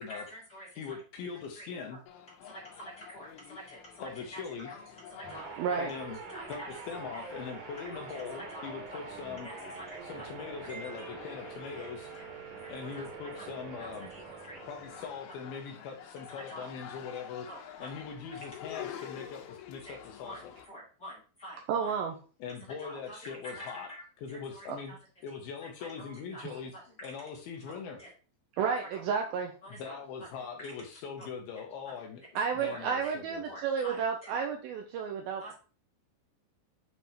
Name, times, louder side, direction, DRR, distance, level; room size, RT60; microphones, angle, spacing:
voice 1, 0.1-1.0 1.5-1.7 2.4-5.5 6.0-6.8 7.1-7.2 7.9-8.7 9.0-9.1 9.4-11.5 11.7-11.9 12.1-12.3 12.6-13.5 13.8-14.6 15.0-15.1 16.3-16.7 17.4-18.0 18.4-18.5 19.8-20.0 20.2-21.9 22.8-25.0 25.3-26.4 26.9-27.1 27.6-28.1 28.8-29.0 29.6-30.0 30.3-30.7 31.2-31.3 32.6-32.8 33.4-34.4 35.4-35.5, equal, 35° left, -5 dB, 1.6 m, -48 dB
voice 2, 0.8-2.0 4.0-4.7 5.8-6.2 6.5-6.6 6.9-9.5 10.0-12.1 12.7-14.1 14.7-17.5 17.8-20.4 22.4-23.9 24.2-25.0 25.2-26.7 27.0-28.0 29.7-32.2 32.5-33.4, left 6 dB, 75° left, 3 dB, 2.4 m, -41 dB
sound 1, 2.1-20.7, left 9 dB, 90° left, 3.2 m, -49 dB
sound 2, 5.2-15.6, right 5 dB, 60° right, 2.3 m, -45 dB
voice 3, 5.6-5.9 21.7-22.1 24.7-24.8 28.6-29.5 32.4-35.5, right 6 dB, 90° right, 2 dB, 2.2 m, -31 dB
7.9 x 3.5 x 4.2 m, 0.37 s
omnidirectional pair, 5.0 m